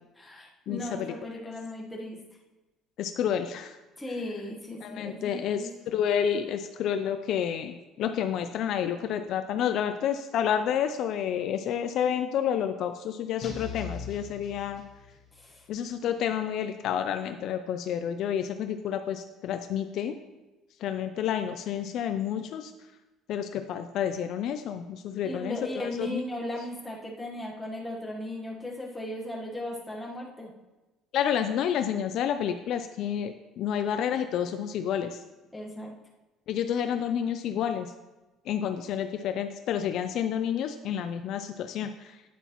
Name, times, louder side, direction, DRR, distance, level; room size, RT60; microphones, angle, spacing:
voice 1, 0.2-2.2 4.0-5.7 15.3-15.6 25.2-30.5 35.5-35.9, left 1 dB, 10° left, -1 dB, 1.2 m, -37 dB
voice 2, 0.7-1.1 3.0-3.8 4.8-14.8 15.7-20.2 20.8-22.7 23.3-26.2 31.1-35.2 36.5-37.9 38.5-42.1, left 9 dB, 55° left, 8 dB, 0.4 m, -29 dB
sound 1, 13.4-15.3, left 4 dB, 35° left, 1.4 m, -40 dB
9.2 x 8.0 x 3.0 m, 1.1 s
cardioid pair, 145°, 0 cm